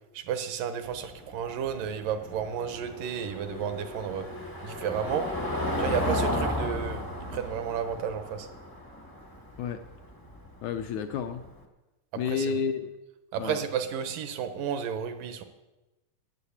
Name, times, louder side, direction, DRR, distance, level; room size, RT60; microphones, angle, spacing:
voice 1, 0.1-4.3 4.6-5.3 5.8-8.5 12.1-12.5 13.3-15.4, right 8 dB, 75° right, 9 dB, 2.6 m, -32 dB
Car passing by / Engine, 0.8-11.5, left 1 dB, 20° left, 0.5 m, -34 dB
voice 2, 10.6-11.5 12.1-12.9 13.4-13.6, left 6 dB, 75° left, 7 dB, 1.8 m, -30 dB
14.0 x 8.8 x 7.2 m, 1.1 s
omnidirectional pair, 3.9 m